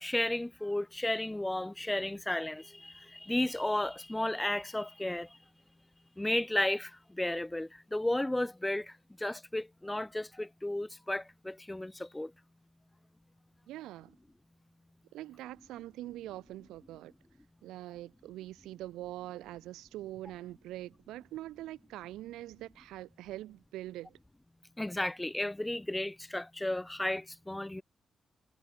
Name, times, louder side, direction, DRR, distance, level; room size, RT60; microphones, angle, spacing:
voice 1, 0.0-5.3 6.2-8.9 9.2-12.3 24.8-27.8, left 1 dB, 15° left, 3.5 m, -33 dB
voice 2, 13.7-14.2 15.1-17.1 17.6-24.2, right 15 dB, 85° right, 3.7 m, -44 dB
hypercardioid pair, 40°, 0 cm